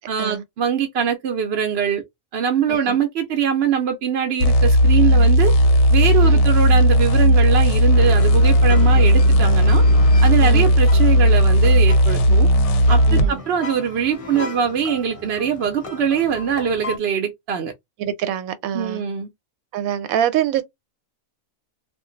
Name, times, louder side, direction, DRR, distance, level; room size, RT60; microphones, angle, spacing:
voice 1, 0.1-2.0 2.3-5.5 5.9-9.8 10.2-12.5 12.9-17.7 18.7-19.3, right 7 dB, 60° right, 0.8 m, -22 dB
sound 1, 4.4-13.3, equal, 65° left, 0.8 m, -14 dB
sound 2, 7.9-17.0, left 3 dB, 35° left, 0.5 m, -35 dB
voice 2, 10.4-10.7 13.1-13.4 18.0-19.0 19.7-20.6, right 10 dB, 85° right, 1.1 m, -25 dB
2.4 x 2.2 x 3.7 m
omnidirectional pair, 1.4 m